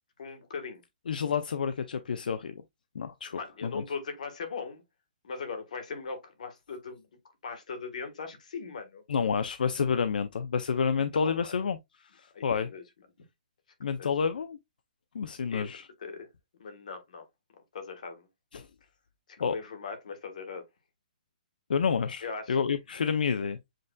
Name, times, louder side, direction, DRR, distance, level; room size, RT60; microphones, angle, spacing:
voice 1, 0.2-0.8 3.3-4.8 5.2-7.1 7.4-9.0 11.2-11.5 12.3-12.8 13.8-14.1 15.5-16.3 16.6-17.3 17.7-18.3 19.3-20.6 22.2-22.6, left 5 dB, 55° left, 1.4 m, -39 dB
voice 2, 1.1-2.5 2.9-3.8 9.1-11.8 12.1-12.7 13.8-14.6 15.1-15.9 18.5-18.7 19.4-19.6 21.7-23.6, left 6 dB, 85° left, 0.4 m, -29 dB
7.5 x 2.6 x 2.2 m
hypercardioid pair, 180°, 5 cm